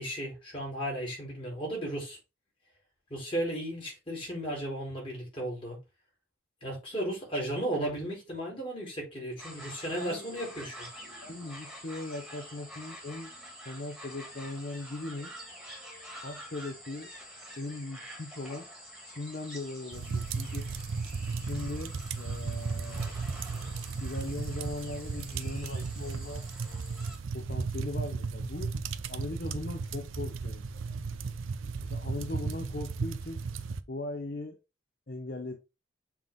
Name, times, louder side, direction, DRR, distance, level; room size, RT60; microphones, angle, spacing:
voice 1, 0.0-2.2 3.1-5.8 6.6-10.9, right 1 dB, 25° left, 3.4 m, -35 dB
sound 1, 9.4-27.2, equal, ahead, 2.2 m, -47 dB
voice 2, 10.0-10.3 11.2-13.3 13.6-15.3 16.2-17.1 17.6-18.7 19.0-20.7 21.4-23.1 24.0-26.4 27.3-28.7 29.1-31.0 31.8-33.4 33.9-34.6 35.1-35.5, left 2 dB, 50° left, 0.8 m, -39 dB
sound 2, 19.9-33.8, right 4 dB, 90° right, 0.5 m, -35 dB
7.4 x 3.7 x 3.6 m
head